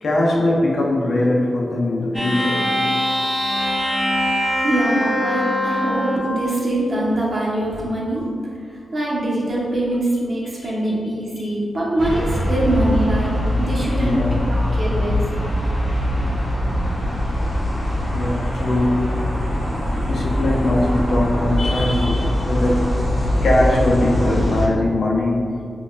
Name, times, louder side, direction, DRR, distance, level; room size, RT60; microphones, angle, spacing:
voice 1, 0.0-2.7 11.4-11.5 12.0-12.2 13.9-14.4 18.1-23.0 23.4-25.5, left 1 dB, 70° left, -2 dB, 0.6 m, -21 dB
sound 1, 2.1-6.3, left 1 dB, 5° right, 0.6 m, -22 dB
voice 2, 4.6-8.2 8.9-15.2, right 1 dB, 50° right, -5 dB, 0.9 m, -23 dB
sound 2, 12.0-24.7, equal, 20° left, 1.1 m, -22 dB
5.3 x 2.3 x 2.3 m, 2.1 s
cardioid pair, 80°, 0 cm